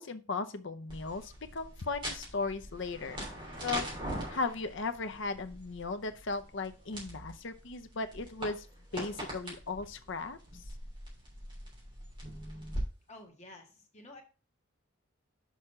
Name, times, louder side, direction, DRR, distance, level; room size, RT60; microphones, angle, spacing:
voice 1, 0.0-3.2 3.6-3.9 4.3-8.7 8.9-10.4, left 4 dB, 60° left, 9 dB, 0.7 m, -36 dB
sound 1, 0.9-12.8, right 1 dB, 25° right, 3.1 m, -43 dB
voice 2, 13.1-14.2, left 2 dB, 30° left, 2 dB, 1.7 m, -51 dB
6.3 x 4.9 x 5.5 m, 0.34 s
head